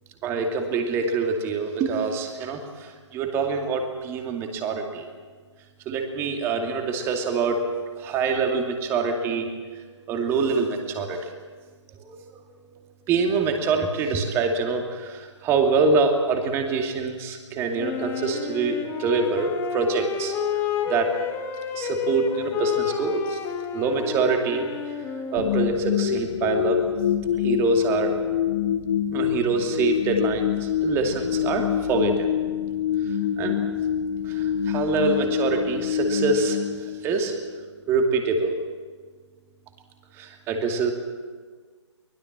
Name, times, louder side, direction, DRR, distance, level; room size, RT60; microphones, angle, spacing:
voice 1, 0.2-5.1 5.9-7.6 8.0-9.8 10.1-11.3 12.0-12.4 12.7-20.3 20.9-21.1 21.7-23.4 23.7-24.7 25.3-26.8 27.4-28.1 29.1-32.3 33.0-33.6 34.2-37.3 37.9-38.5 40.1-40.9, right 4 dB, 15° right, 4 dB, 2.4 m, -25 dB
Wind instrument woodwind instrument, 17.8-25.8, left 8 dB, 15° left, 1.6 m, -30 dB
sound 1, 25.4-37.5, left 10 dB, 30° left, 0.7 m, -26 dB
24.0 x 20.5 x 7.5 m, 1.5 s
figure-of-eight pair, 140°, 16 cm